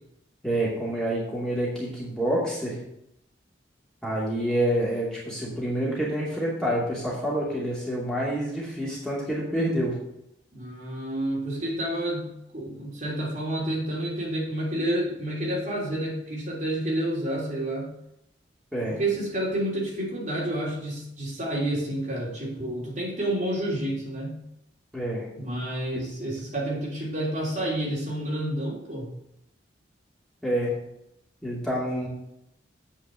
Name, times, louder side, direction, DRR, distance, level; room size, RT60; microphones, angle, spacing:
voice 1, 0.4-2.8 4.0-9.9 18.7-19.0 24.9-25.3 30.4-30.7 31.4-32.1, right 1 dB, 5° left, -6 dB, 2.6 m, -27 dB
voice 2, 10.5-17.9 18.9-24.4 25.4-29.1, right 1 dB, 40° right, -4 dB, 3.3 m, -29 dB
8.6 x 5.2 x 7.7 m, 0.80 s
head